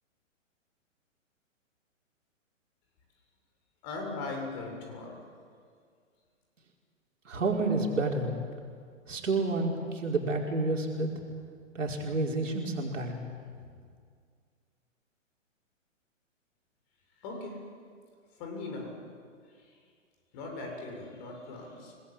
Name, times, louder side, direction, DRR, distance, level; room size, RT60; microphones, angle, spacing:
voice 1, 3.8-5.2 17.2-17.6 18.3-19.0 19.5-19.8 20.3-21.9, left 3 dB, 35° left, 2 dB, 7.4 m, -39 dB
voice 2, 7.2-8.3 9.1-11.1 11.7-13.2, right 2 dB, 70° right, 0 dB, 5.0 m, -29 dB
29.5 x 20.0 x 8.8 m, 2.1 s
figure-of-eight pair, 120°, 39 cm